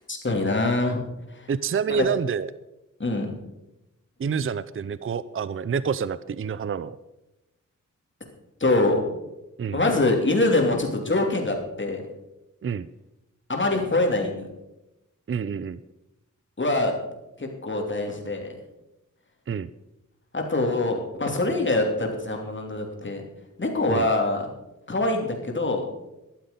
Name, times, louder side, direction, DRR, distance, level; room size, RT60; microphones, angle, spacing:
voice 1, 0.1-1.0 1.3-1.5 1.9-2.0 3.0-3.3 8.6-9.0 9.7-12.0 13.5-14.5 16.6-16.9 17.4-18.5 20.3-23.2 23.6-24.5 24.9-25.9, left 2 dB, 40° left, 2 dB, 2.9 m, -24 dB
voice 2, 1.5-2.5 4.2-7.0 9.6-9.8 12.6-12.9 15.3-15.8 19.5-19.7 23.9-24.1, right 6 dB, 45° right, 16 dB, 0.5 m, -28 dB
13.0 x 12.0 x 5.3 m, 0.95 s
wide cardioid pair, 115°, 31 cm